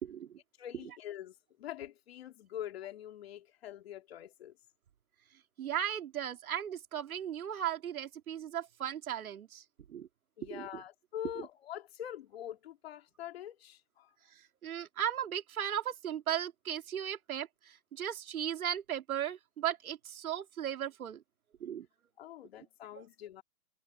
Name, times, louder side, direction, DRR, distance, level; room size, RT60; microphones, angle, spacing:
voice 1, 0.0-0.4 5.6-9.6 9.9-10.1 10.5-10.8 14.6-21.2 21.6-21.9 23.0-23.1, right 10 dB, 70° right, 2.1 m, -36 dB
voice 2, 0.6-4.6 10.4-14.2 22.2-23.4, left 11 dB, 45° left, 2.8 m, -44 dB
hypercardioid pair, 170°, 44 cm